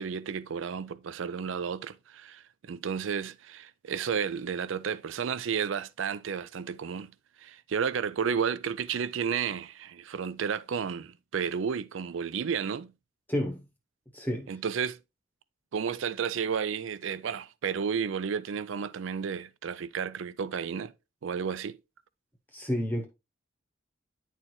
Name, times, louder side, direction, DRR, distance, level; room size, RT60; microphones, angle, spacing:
voice 1, 0.0-12.9 14.5-15.0 15.7-20.9 21.2-21.8, right 7 dB, 75° right, 0.4 m, -32 dB
voice 2, 13.3-13.6 14.1-14.5 22.5-23.1, equal, 10° left, 0.9 m, -30 dB
9.8 x 4.5 x 3.1 m
head